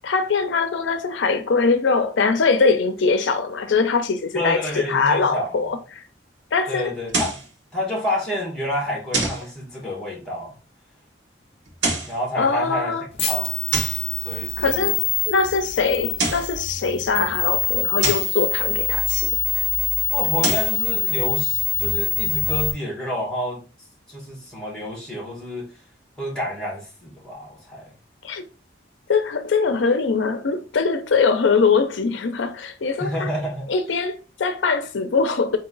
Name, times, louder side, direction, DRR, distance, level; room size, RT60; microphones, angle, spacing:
voice 1, 0.0-6.0 6.5-6.9 12.4-13.0 14.6-15.0 15.3-19.6 28.2-28.4 29.1-33.3 33.7-35.6, left 4 dB, 80° left, 0.5 m, -22 dB
voice 2, 4.3-5.6 6.7-7.4 7.7-10.6 12.1-12.9 13.2-13.5 14.2-15.0 20.1-23.6 24.1-25.7 26.2-27.9 33.0-33.6, left 1 dB, 5° left, 1.4 m, -29 dB
sound 1, 7.1-7.5 9.1-9.5 11.7-12.2 13.7-14.1 16.0-16.6 18.0-18.4 20.2-20.8, right 3 dB, 80° right, 1.1 m, -25 dB
sound 2, 13.2-22.7, left 7 dB, 30° left, 0.5 m, -24 dB
3.9 x 2.8 x 3.8 m
head